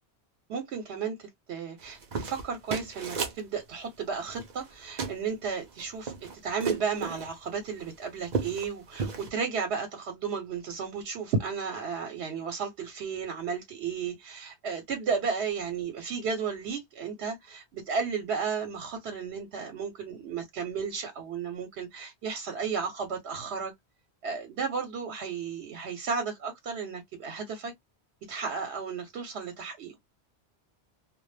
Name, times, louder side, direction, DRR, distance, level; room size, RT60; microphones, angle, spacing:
voice 1, 0.5-6.1 6.4-23.7 24.2-27.7 28.3-29.9, right 5 dB, 80° right, 0.9 m, -33 dB
sound 1, 1.8-3.4 4.3-4.7 5.0-5.2 5.7-7.3 7.8-7.9 8.2-8.7 9.0-9.3, right 5 dB, 50° right, 0.6 m, -33 dB
2.2 x 2.0 x 3.1 m
omnidirectional pair, 1.1 m